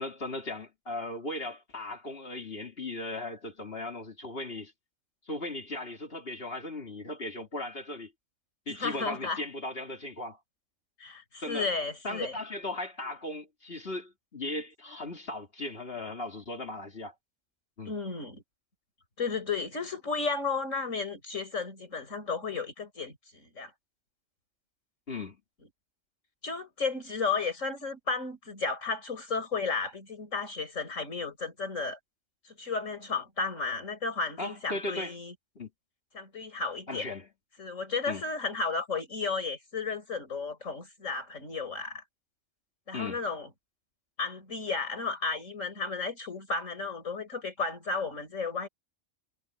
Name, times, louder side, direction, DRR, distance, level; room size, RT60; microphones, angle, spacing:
voice 1, 0.0-4.7 5.3-8.1 8.7-10.4 11.4-11.7 12.0-17.1 17.8-17.9 25.1-25.4 34.4-35.1 35.6-35.7 36.9-37.3 38.1-38.2 42.9-43.2, left 2 dB, 50° left, 3.0 m, -37 dB
voice 2, 8.7-9.4 11.0-12.4 17.8-18.4 19.2-23.7 26.4-32.0 32.5-35.3 36.1-37.1 37.6-42.0 42.9-43.5 44.2-48.7, left 4 dB, 80° left, 5.2 m, -33 dB
omnidirectional pair, 1.3 m